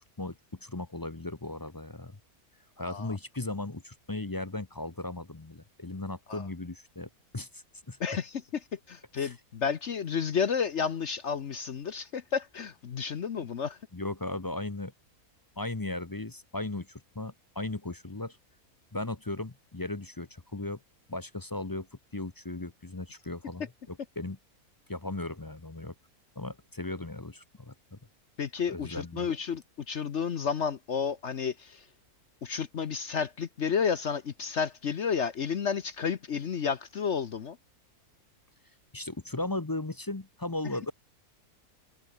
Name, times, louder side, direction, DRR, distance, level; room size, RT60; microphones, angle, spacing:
voice 1, 0.0-2.2 2.8-8.0 9.2-9.3 13.9-14.9 15.6-18.4 18.9-20.8 21.1-21.9 22.1-24.4 24.9-25.9 26.4-28.0 28.7-29.3 38.9-40.9, left 2 dB, 20° left, 0.7 m, -37 dB
voice 2, 2.8-3.1 6.3-6.4 8.0-8.3 8.7-13.8 28.4-31.8 32.4-37.6, left 6 dB, 55° left, 1.2 m, -31 dB
omnidirectional pair, 1.6 m